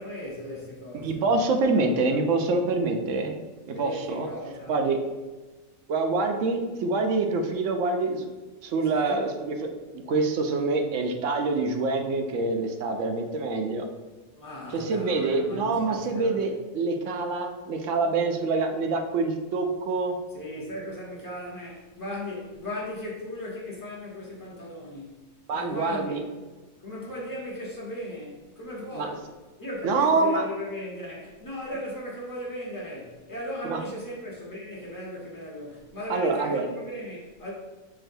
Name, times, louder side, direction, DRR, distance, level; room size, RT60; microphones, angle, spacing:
voice 1, 0.0-1.2 1.6-1.9 3.7-4.8 8.9-9.3 14.3-16.5 20.3-25.2 25.5-26.2 26.8-29.2 29.6-37.5, left 1 dB, 15° left, -5 dB, 0.9 m, -37 dB
voice 2, 1.0-3.4 3.7-4.3 4.7-5.0 5.9-8.3 8.6-9.7 9.9-13.8 14.7-20.2 25.5-26.2 28.9-29.1 29.8-30.5 33.6-33.8 36.1-36.6, right 3 dB, 70° right, 5 dB, 0.8 m, -26 dB
6.0 x 2.5 x 2.6 m, 1.3 s
omnidirectional pair, 1.4 m